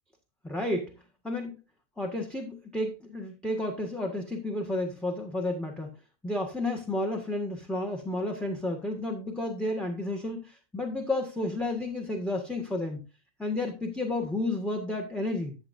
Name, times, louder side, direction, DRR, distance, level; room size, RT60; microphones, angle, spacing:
voice 1, 0.4-0.9 1.2-1.6 2.0-5.9 6.2-13.0 13.4-15.6, left 2 dB, ahead, 2 dB, 1.4 m, -31 dB
13.5 x 7.4 x 2.7 m, 0.29 s
omnidirectional pair, 1.6 m